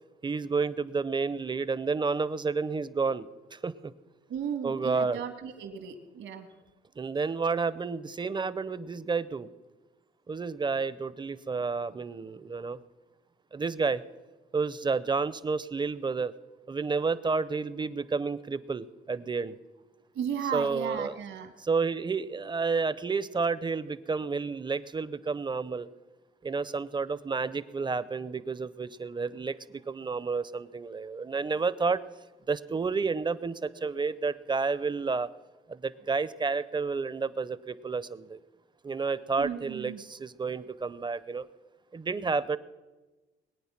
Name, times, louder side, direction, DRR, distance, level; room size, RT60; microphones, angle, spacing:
voice 1, 0.2-3.9 4.6-5.2 7.0-9.5 10.3-12.8 13.5-14.0 14.5-16.3 16.7-19.6 20.5-21.1 21.6-25.9 26.4-32.0 32.5-35.3 35.7-38.4 38.8-41.4 41.9-42.6, right 4 dB, 25° right, 16 dB, 0.6 m, -30 dB
voice 2, 4.3-6.5 20.1-21.5 39.4-40.0, right 8 dB, 80° right, 6 dB, 2.2 m, -35 dB
21.5 x 9.1 x 5.9 m, 1.2 s
cardioid pair, 90°, 20 cm